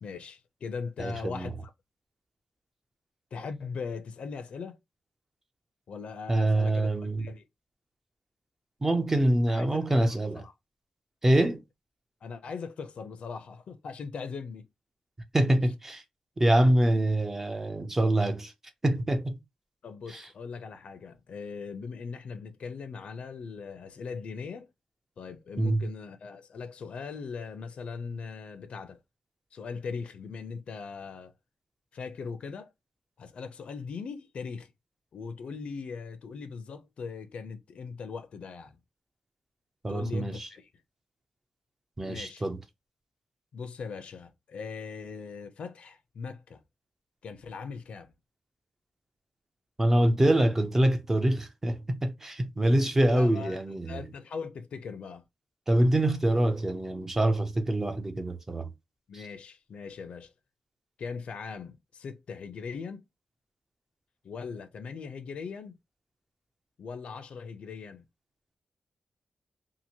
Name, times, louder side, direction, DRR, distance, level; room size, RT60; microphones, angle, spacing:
voice 1, 0.0-1.7 3.3-4.8 5.9-7.5 9.5-10.5 12.2-14.7 19.8-24.7 25.2-29.0 29.5-31.3 31.9-32.7 33.2-34.7 35.1-38.8 39.9-40.7 42.1-42.4 43.5-46.6 47.2-48.1 53.1-53.6 53.9-55.2 59.1-60.3 61.0-63.0 64.2-65.8 66.8-68.0, left 5 dB, 70° left, 0.5 m, -40 dB
voice 2, 1.0-1.5 6.3-7.3 8.8-10.4 11.2-11.6 15.3-16.0 16.4-18.5 18.8-19.4 20.1-20.3 25.6-25.9 39.8-40.5 42.0-42.6 49.8-54.0 55.7-58.7 59.1-59.2, right 1 dB, 20° right, 0.5 m, -25 dB
2.8 x 2.5 x 2.7 m
wide cardioid pair, 155°, 2 cm